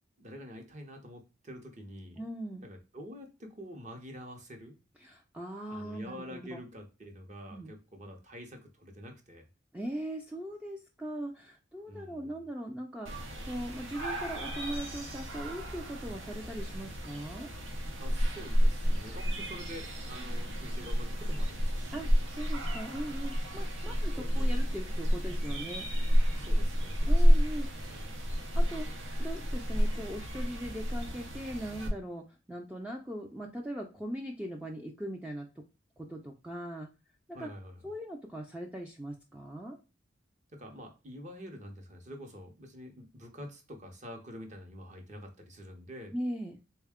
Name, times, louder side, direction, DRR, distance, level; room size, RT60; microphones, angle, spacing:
voice 1, 0.2-2.2 2.6-4.8 5.6-9.5 11.9-12.4 18.0-22.1 23.8-24.6 26.3-27.5 27.9-28.4 37.3-37.8 40.5-46.1, equal, 40° right, 3 dB, 0.7 m, -47 dB
voice 2, 2.2-2.6 5.0-6.5 7.5-7.7 9.7-17.5 21.9-25.9 27.1-27.9 28.5-28.9 29.2-35.5 36.0-36.9 37.4-37.5 37.8-39.8 46.1-46.6, right 1 dB, 5° right, 1 dB, 0.3 m, -40 dB
sound 1, 13.1-31.9, equal, 85° right, 0.9 m, -30 dB
3.5 x 2.2 x 3.5 m, 0.30 s
head